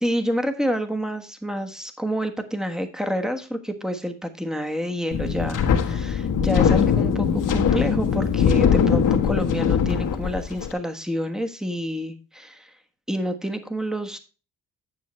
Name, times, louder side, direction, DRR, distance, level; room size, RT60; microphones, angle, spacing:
voice 1, 0.0-12.7 13.1-14.2, equal, ahead, 6 dB, 1.3 m, -28 dB
Wind, 5.1-10.7, left 7 dB, 75° left, 1.4 m, -21 dB
9.3 x 6.8 x 3.1 m, 0.33 s
cardioid pair, 90°, 32 cm